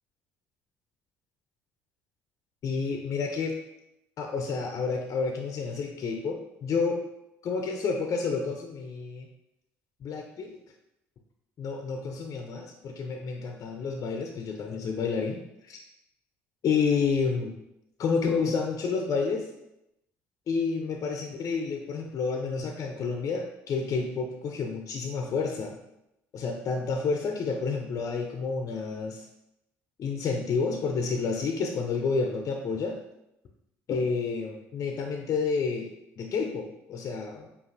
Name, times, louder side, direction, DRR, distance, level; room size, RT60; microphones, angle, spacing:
voice 1, 2.6-3.5 4.2-7.0 7.4-9.3 10.0-10.6 11.6-15.8 16.6-17.5 18.0-19.5 20.5-25.8 26.3-29.3 30.0-33.0 33.9-35.9 36.2-37.5, left 5 dB, 45° left, 3 dB, 0.4 m, -30 dB
5.1 x 2.4 x 2.5 m, 0.87 s
hypercardioid pair, 55°, 7 cm